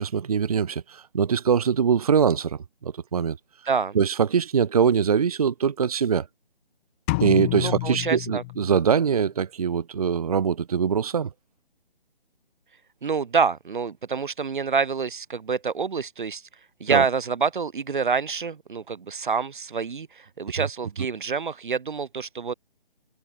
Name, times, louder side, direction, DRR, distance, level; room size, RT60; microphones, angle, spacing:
voice 1, 0.0-3.4 3.9-6.3 7.2-11.3 16.9-17.1 20.6-20.7, right 7 dB, 40° right, 1.2 m, -23 dB
voice 2, 3.7-4.0 7.6-8.4 13.0-16.4 16.8-22.5, right 5 dB, 55° right, 1.4 m, -27 dB
sound 1, 7.1-9.1, left 23 dB, 15° left, 1.4 m, -29 dB
figure-of-eight pair, 160°, 30 cm